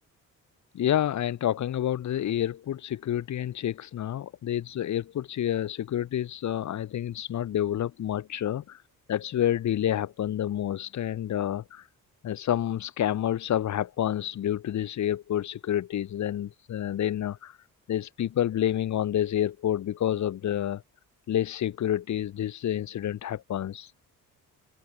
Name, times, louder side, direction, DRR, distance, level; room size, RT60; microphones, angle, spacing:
voice 1, 0.7-8.8 9.1-11.9 12.2-17.6 17.9-20.8 21.3-23.9, left 11 dB, 55° left, 7.5 m, -29 dB
cardioid pair, 170°, 33 cm